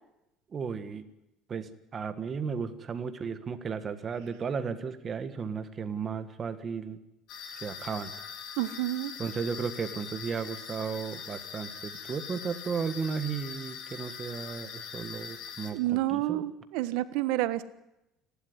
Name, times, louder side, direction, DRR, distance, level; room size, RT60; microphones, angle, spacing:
voice 1, 0.5-1.0 1.5-7.0 7.5-8.1 9.2-16.4, right 6 dB, 25° right, 10 dB, 1.6 m, -34 dB
sound 1, 7.3-15.7, left 7 dB, 50° left, 3.9 m, -42 dB
voice 2, 8.6-9.1 15.7-17.6, right 15 dB, 70° right, 13 dB, 1.3 m, -29 dB
29.5 x 12.0 x 9.7 m, 0.90 s
cardioid pair, 175°, 0 cm